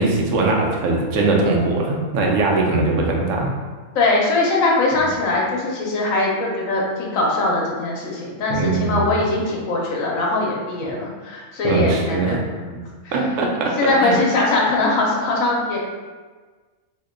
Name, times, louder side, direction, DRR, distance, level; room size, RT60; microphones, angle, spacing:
voice 1, 0.0-3.5 5.0-5.1 8.5-9.1 11.6-12.4 13.1-13.7 14.0-14.2, right 3 dB, 75° right, 0 dB, 0.9 m, -20 dB
voice 2, 3.9-12.7 13.0-13.2 13.8-15.8, left 2 dB, 85° left, -3 dB, 1.2 m, -21 dB
2.9 x 2.2 x 3.6 m, 1.4 s
omnidirectional pair, 1.4 m